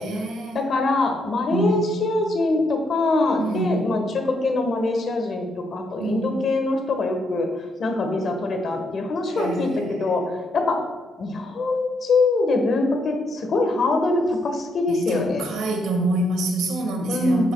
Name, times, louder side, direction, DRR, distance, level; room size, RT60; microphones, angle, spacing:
voice 1, 0.0-0.6 1.5-1.8 3.4-3.9 6.0-6.4 9.3-10.3 14.9-17.5, right 2 dB, 85° right, 2 dB, 1.9 m, -26 dB
voice 2, 0.5-4.0 4.3-7.5 7.8-10.2 10.5-10.8 11.2-15.4 17.1-17.5, left 2 dB, 55° left, 4 dB, 1.5 m, -23 dB
10.5 x 7.6 x 2.4 m, 1.4 s
cardioid pair, 90°, 0 cm